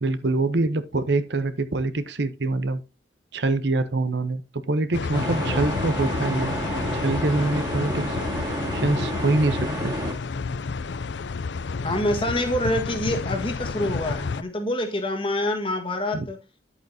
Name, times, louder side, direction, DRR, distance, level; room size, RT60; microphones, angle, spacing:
voice 1, 0.0-2.8 3.3-9.9 16.1-16.3, right 2 dB, 60° right, 0.8 m, -25 dB
sound 1, 4.9-14.4, left 4 dB, 65° left, 0.5 m, -30 dB
sound 2, 5.1-10.1, right 1 dB, 20° right, 2.2 m, -30 dB
voice 2, 11.8-16.4, left 1 dB, 25° left, 1.6 m, -26 dB
10.5 x 8.4 x 2.7 m
head